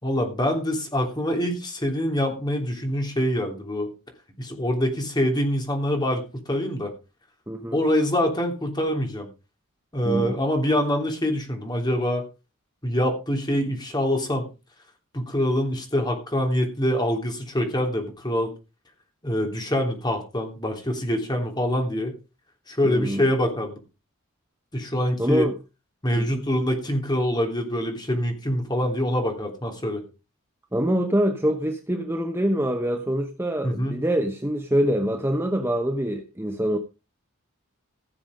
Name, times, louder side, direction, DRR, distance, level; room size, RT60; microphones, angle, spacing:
voice 1, 0.0-3.9 4.4-6.9 7.7-9.3 9.9-12.2 12.8-14.4 15.1-18.5 19.2-22.1 22.7-23.8 24.7-25.4 26.0-30.0 33.6-34.0, equal, 20° left, 3.3 m, -25 dB
voice 2, 7.5-7.8 10.0-10.4 22.8-23.2 25.2-25.6 26.1-26.5 30.7-36.8, equal, 10° right, 1.0 m, -25 dB
16.0 x 7.1 x 5.1 m
head